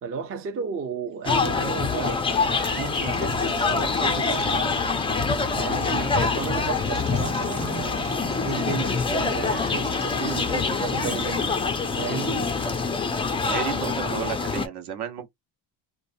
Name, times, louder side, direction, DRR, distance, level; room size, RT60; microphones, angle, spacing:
voice 1, 0.0-4.8 5.5-8.1 8.4-12.5, right 6 dB, 30° right, 0.6 m, -34 dB
sound 1, 1.3-14.7, left 4 dB, 15° left, 0.3 m, -25 dB
Bird vocalization bird call bird song, 1.3-14.0, right 6 dB, 85° right, 1.1 m, -47 dB
voice 2, 13.5-15.3, right 8 dB, 60° right, 0.9 m, -32 dB
3.0 x 2.1 x 2.5 m
cardioid pair, 120°, 45 cm